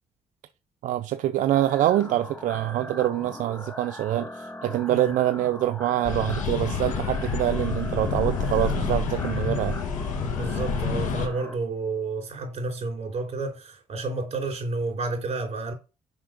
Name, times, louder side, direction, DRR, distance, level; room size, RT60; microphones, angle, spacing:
voice 1, 0.8-9.8, right 13 dB, 80° right, 0.5 m, -25 dB
sound 1, 1.5-11.5, left 1 dB, 15° left, 1.3 m, -40 dB
sound 2, 6.0-11.3, left 5 dB, 85° left, 1.5 m, -28 dB
voice 2, 10.2-15.7, right 3 dB, 50° right, 3.7 m, -30 dB
5.9 x 5.3 x 5.1 m
cardioid pair, 95°, 13 cm